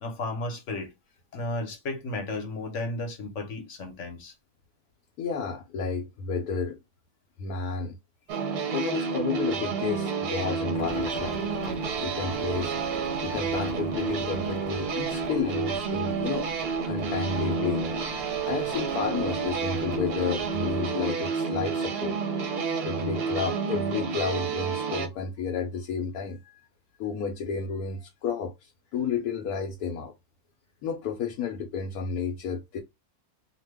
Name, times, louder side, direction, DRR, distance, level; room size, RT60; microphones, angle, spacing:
voice 1, 0.0-0.9 1.3-4.3, left 2 dB, 55° left, 1.1 m, -33 dB
voice 2, 5.2-6.8 7.4-8.0 8.7-11.4 12.0-12.7 13.2-16.5 16.9-22.2 22.8-26.4 27.0-30.1 30.8-32.8, left 6 dB, 80° left, 1.1 m, -31 dB
sound 1, 8.3-25.1, right 5 dB, 55° right, 0.7 m, -30 dB
sound 2, 10.7-20.7, left 2 dB, 30° left, 0.5 m, -46 dB
2.9 x 2.2 x 3.2 m
omnidirectional pair, 1.6 m